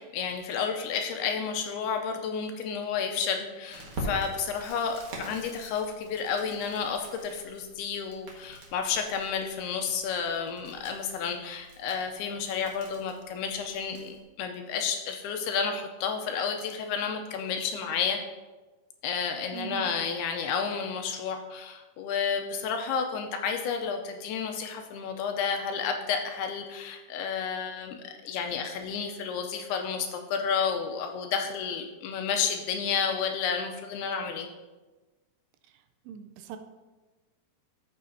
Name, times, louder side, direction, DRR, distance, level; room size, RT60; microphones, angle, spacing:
voice 1, 0.0-18.2 19.0-34.5, left 6 dB, 80° left, 5 dB, 2.4 m, -31 dB
Crackle, 3.7-14.2, equal, 55° right, 1.5 m, -44 dB
voice 2, 19.5-19.9 36.1-36.6, right 8 dB, 85° right, 8 dB, 2.6 m, -40 dB
13.5 x 6.5 x 2.7 m, 1.2 s
omnidirectional pair, 4.9 m